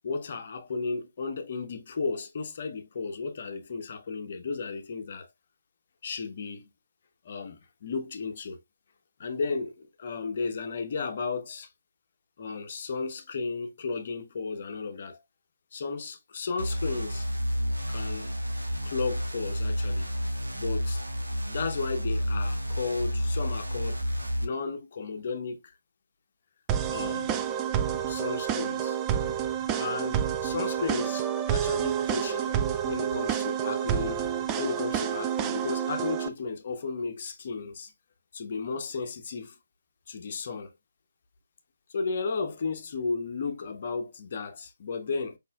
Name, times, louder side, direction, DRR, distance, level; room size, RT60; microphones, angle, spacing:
voice 1, 0.0-5.3 6.0-6.7 7.2-8.6 9.2-11.7 12.4-15.2 15.7-17.3 17.9-18.3 18.8-20.1 20.5-21.0 21.5-24.0 24.4-25.7 26.9-27.5 28.1-29.0 29.7-34.2 34.6-37.9 38.3-39.6 40.1-40.7 41.9-45.4, left 4 dB, 40° left, 0.9 m, -34 dB
sound 1, 16.6-24.4, equal, 80° right, 1.1 m, -30 dB
sound 2, 26.7-36.3, right 9 dB, 15° right, 0.4 m, -29 dB
5.3 x 4.1 x 2.3 m
figure-of-eight pair, 145°, 0 cm